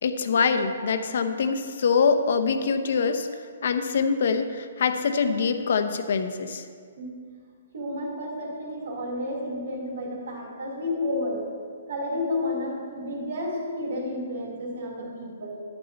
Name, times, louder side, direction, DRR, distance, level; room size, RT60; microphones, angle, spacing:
voice 1, 0.0-3.3 3.6-6.6, left 5 dB, 65° left, 8 dB, 0.8 m, -24 dB
voice 2, 7.7-11.5 11.9-15.6, left 1 dB, 70° right, -2 dB, 3.1 m, -31 dB
11.0 x 8.9 x 4.1 m, 2.1 s
hypercardioid pair, 145°, 0 cm